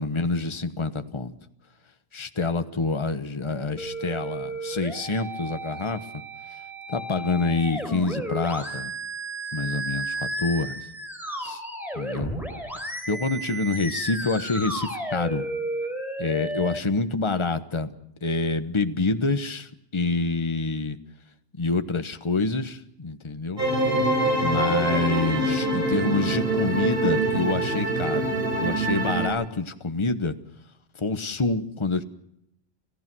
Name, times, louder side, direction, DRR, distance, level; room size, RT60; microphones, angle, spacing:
voice 1, 0.0-1.3 2.1-6.0 6.9-8.9 9.5-10.9 11.4-11.6 12.0-12.3 13.1-15.5 16.2-17.9 18.2-21.0 21.6-23.6 24.4-28.3 28.6-30.4 31.0-32.0, left 3 dB, 30° left, 9 dB, 1.1 m, -27 dB
sound 1, 3.8-16.8, right 1 dB, ahead, 4.3 m, -33 dB
sound 2, 23.6-29.3, right 2 dB, 60° right, 5.5 m, -24 dB
29.5 x 15.5 x 6.1 m, 0.77 s
omnidirectional pair, 1.1 m